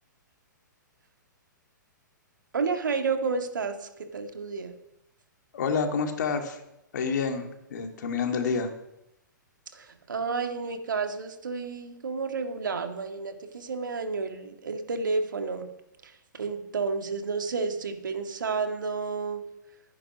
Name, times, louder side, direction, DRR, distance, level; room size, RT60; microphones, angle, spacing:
voice 1, 2.5-4.7 9.7-15.7 16.0-19.4, right 4 dB, 75° right, 6 dB, 1.9 m, -31 dB
voice 2, 5.5-6.6 6.9-8.7, left 5 dB, 65° left, 5 dB, 2.2 m, -28 dB
14.0 x 10.0 x 5.9 m, 0.88 s
figure-of-eight pair, 120°, 10 cm